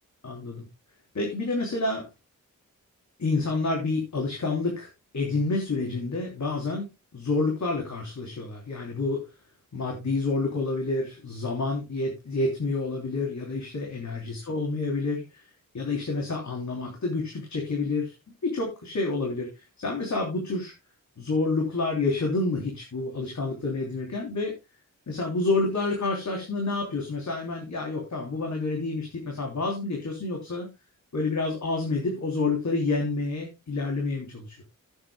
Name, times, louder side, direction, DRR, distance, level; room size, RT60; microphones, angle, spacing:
voice 1, 0.2-0.6 1.1-2.1 3.2-4.9 5.1-6.9 7.1-9.2 9.7-15.4 15.7-18.1 18.4-20.7 21.2-24.5 25.1-30.7 31.1-34.6, left 3 dB, 55° left, 1 dB, 3.1 m, -28 dB
16.0 x 8.8 x 2.2 m, 0.24 s
wide cardioid pair, 160°, 33 cm